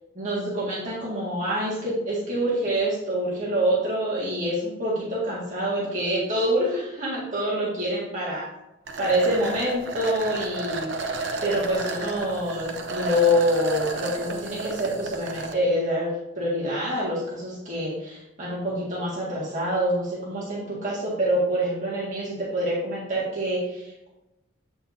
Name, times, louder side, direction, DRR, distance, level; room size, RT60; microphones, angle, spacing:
voice 1, 0.2-8.4 9.0-10.9 11.4-24.1, equal, 40° right, -8 dB, 1.9 m, -26 dB
sound 1, 8.9-15.5, right 3 dB, 65° right, 0.7 m, -32 dB
8.1 x 5.9 x 2.7 m, 0.94 s
head